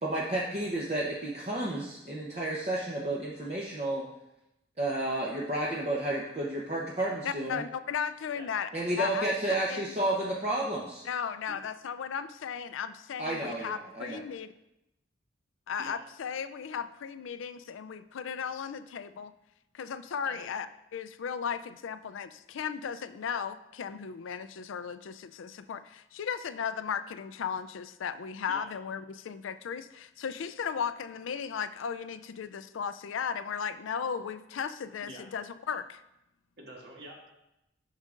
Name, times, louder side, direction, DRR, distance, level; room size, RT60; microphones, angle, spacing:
voice 1, 0.0-4.0 4.8-7.6 8.7-11.0 13.2-14.2, right 1 dB, 35° right, -5 dB, 0.8 m, -31 dB
voice 2, 7.2-8.7 9.0-9.3 9.7-9.8 11.0-14.5 15.7-19.3 19.7-20.7 20.9-36.0, left 7 dB, 80° left, 12 dB, 0.4 m, -36 dB
voice 3, 36.6-37.3, right 1 dB, 55° right, -2 dB, 1.7 m, -46 dB
10.0 x 6.4 x 2.5 m, 0.89 s
head